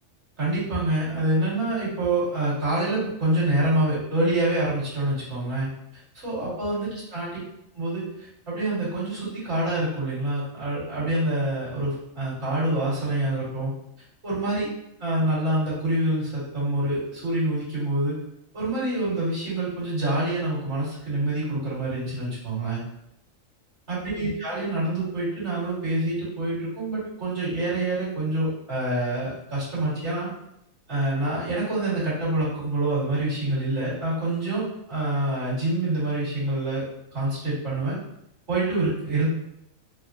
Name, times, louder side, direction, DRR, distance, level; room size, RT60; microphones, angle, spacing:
voice 1, 0.4-5.7 6.1-7.4 7.8-13.7 14.2-14.7 15.0-18.2 18.5-22.8 23.9-30.3 30.9-36.8 37.1-38.0 38.5-39.3, right 2 dB, 60° right, -10 dB, 2.0 m, -26 dB
3.5 x 2.0 x 2.6 m, 0.79 s
omnidirectional pair, 1.4 m